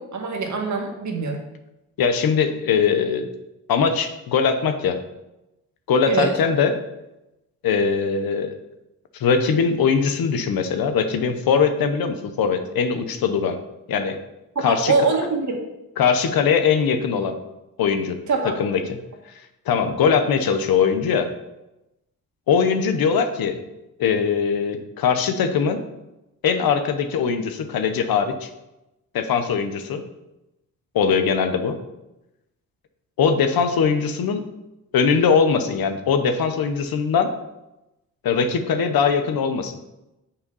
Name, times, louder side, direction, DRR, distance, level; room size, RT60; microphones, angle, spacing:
voice 1, 0.0-1.4 6.1-6.3 14.6-15.6 18.3-18.6, right 4 dB, 50° right, 2 dB, 1.8 m, -23 dB
voice 2, 2.0-3.2 3.7-5.0 5.9-6.7 7.6-8.5 9.2-13.6 13.9-14.2 14.6-14.9 16.0-17.3 17.8-18.2 18.4-18.8 19.7-21.3 22.5-23.6 24.0-25.8 26.4-28.5 29.1-30.0 30.9-31.8 33.2-34.4 34.9-37.3 38.2-39.8, left 6 dB, 75° left, 8 dB, 1.0 m, -21 dB
6.9 x 5.5 x 5.5 m, 0.93 s
cardioid pair, 90°, 36 cm